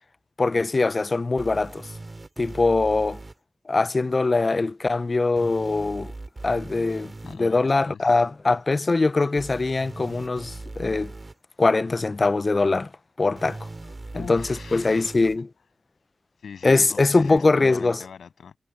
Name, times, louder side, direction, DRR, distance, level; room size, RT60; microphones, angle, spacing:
voice 1, 0.4-1.9 2.4-3.2 3.7-6.1 6.4-11.1 11.6-12.9 13.2-13.6 14.2-15.5 16.6-18.0, left 3 dB, 35° left, 0.4 m, -22 dB
sound 1, 1.4-3.3 5.4-7.4 9.4-11.3 13.4-15.4 17.4-17.5, right 2 dB, 30° right, 2.4 m, -39 dB
voice 2, 7.2-8.2 13.8-15.0 16.4-18.6, left 6 dB, 90° left, 7.7 m, -42 dB
wide cardioid pair, 115°, 0 cm